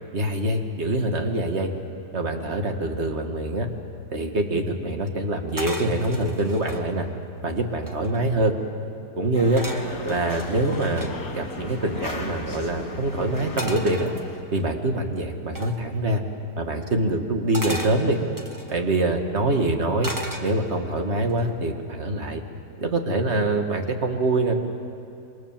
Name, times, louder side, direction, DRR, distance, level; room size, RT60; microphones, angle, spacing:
voice 1, 0.1-1.7 2.1-3.7 4.1-7.1 7.4-8.5 9.2-9.6 10.0-14.1 14.5-16.2 16.6-18.2 18.7-20.1 20.4-22.4 22.8-24.5, right 2 dB, 35° right, 4 dB, 2.0 m, -24 dB
sound 1, 5.6-6.9 7.4-7.5 7.7-8.4 9.6-11.1 13.6-14.6 15.6-15.8 17.5-18.8 20.0-20.9 21.3-21.6, equal, 10° right, 1.5 m, -35 dB
sound 2, 9.3-14.4, left 3 dB, 65° left, 3.3 m, -36 dB
27.0 x 24.5 x 7.4 m, 2.5 s
omnidirectional pair, 2.0 m